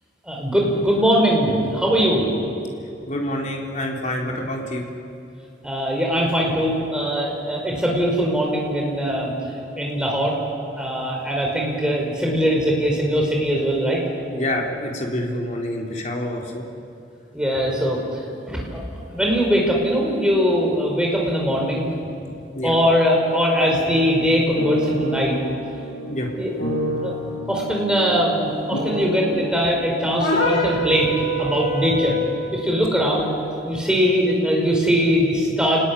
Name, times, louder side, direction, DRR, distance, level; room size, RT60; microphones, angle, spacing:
voice 1, 0.2-2.3 5.6-9.3 9.8-10.3 10.7-14.0 17.3-18.8 19.1-21.9 22.6-25.4 26.4-26.5 27.0-27.1 27.5-32.2 32.5-33.3 33.7-35.8, equal, 5° right, -1 dB, 5.2 m, -21 dB
voice 2, 3.1-4.9 14.3-16.6 22.5-22.7 26.1-26.3, left 1 dB, 40° left, 0 dB, 3.7 m, -27 dB
sound 1, 23.2-29.5, equal, 75° left, 5.5 m, -29 dB
sound 2, 30.2-32.4, equal, 90° left, 6.1 m, -24 dB
30.0 x 19.0 x 10.0 m, 2.5 s
head